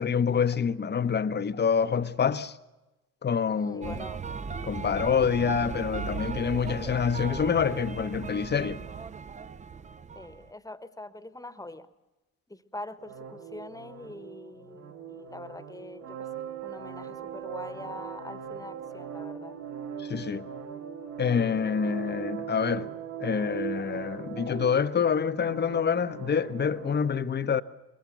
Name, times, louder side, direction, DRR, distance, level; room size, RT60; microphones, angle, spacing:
voice 1, 0.0-2.6 3.2-3.9 4.6-8.8 20.0-20.5 21.2-22.9 23.2-27.6, left 6 dB, 25° left, 1.0 m, -27 dB
voice 2, 3.5-4.2 10.1-11.9 12.5-16.3 16.6-19.6, left 2 dB, 10° left, 1.3 m, -43 dB
sound 1, 3.8-10.5, right 5 dB, 15° right, 0.7 m, -37 dB
sound 2, 13.0-27.0, right 8 dB, 70° right, 3.2 m, -40 dB
22.5 x 21.0 x 6.9 m
figure-of-eight pair, 50°, 44 cm